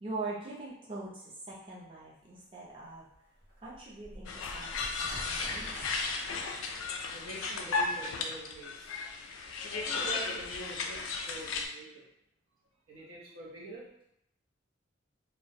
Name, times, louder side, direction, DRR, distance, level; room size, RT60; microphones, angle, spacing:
voice 1, 0.0-3.0 3.6-6.0, right 3 dB, 25° right, -6 dB, 0.4 m, -42 dB
sound 1, 2.4-2.5 2.9-3.0 3.3-8.8 9.8-9.9 10.1-10.8, equal, 50° right, 1.0 m, -49 dB
sound 2, 4.3-11.7, left 4 dB, 80° left, 0.3 m, -35 dB
voice 2, 7.1-9.0 9.7-12.1 12.9-13.9, right 2 dB, 90° right, -5 dB, 0.7 m, -45 dB
2.3 x 2.0 x 2.6 m, 0.76 s
head